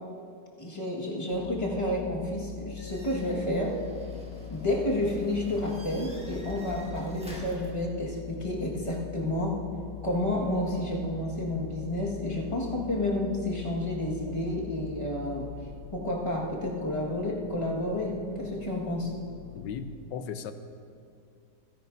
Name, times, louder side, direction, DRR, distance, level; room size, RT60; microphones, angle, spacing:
voice 1, 0.6-3.8 4.5-9.6 10.0-15.5 15.9-19.1, left 1 dB, 15° left, -3 dB, 1.7 m, -30 dB
sound 1, 1.3-19.7, left 11 dB, 65° left, 1.0 m, -43 dB
sound 2, 2.8-7.7, equal, 5° right, 1.4 m, -46 dB
voice 2, 19.5-20.5, left 7 dB, 85° left, 9 dB, 1.4 m, -36 dB
27.5 x 10.5 x 2.7 m, 2.4 s
omnidirectional pair, 1.9 m